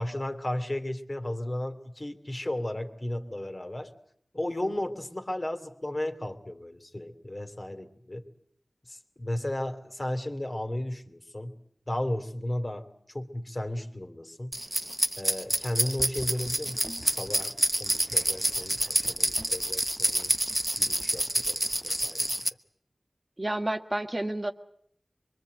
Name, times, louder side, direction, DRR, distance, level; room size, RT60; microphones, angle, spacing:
voice 1, 0.0-3.9 4.3-8.3 8.9-11.5 11.9-12.9 13.1-14.5 15.2-20.3 20.8-22.3, left 1 dB, 35° left, 6 dB, 2.8 m, -34 dB
sound 1, 14.5-22.5, right 1 dB, 15° right, 0.9 m, -28 dB
voice 2, 23.4-24.5, right 1 dB, 35° right, 5 dB, 1.6 m, -30 dB
24.5 x 24.0 x 8.0 m, 0.68 s
wide cardioid pair, 65°, 0 cm